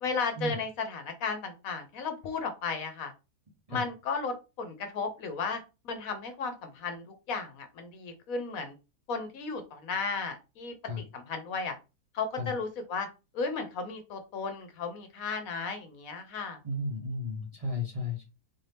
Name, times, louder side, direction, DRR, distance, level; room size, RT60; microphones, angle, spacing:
voice 1, 0.0-3.1 3.7-5.6 5.8-8.7 9.1-11.7 12.1-13.1 13.3-16.6, left 4 dB, 70° left, 7 dB, 1.0 m, -34 dB
voice 2, 16.6-18.2, left 2 dB, 30° right, -2 dB, 0.8 m, -34 dB
4.0 x 2.7 x 3.3 m, 0.28 s
omnidirectional pair, 1.7 m